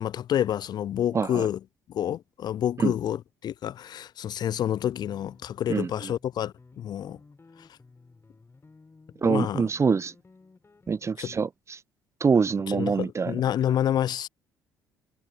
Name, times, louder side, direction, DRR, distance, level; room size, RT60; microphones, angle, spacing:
voice 1, 0.0-1.6 1.9-7.2 9.2-9.6 11.2-11.3 12.7-14.3, left 10 dB, 50° left, 0.4 m, -28 dB
voice 2, 1.1-1.5 2.8-2.9 5.7-6.1 9.2-10.1 10.9-11.8 12.2-13.4, right 5 dB, 30° right, 0.7 m, -25 dB
sound 1, 4.6-11.1, left 3 dB, 25° left, 6.1 m, -55 dB
figure-of-eight pair, 45°, 9 cm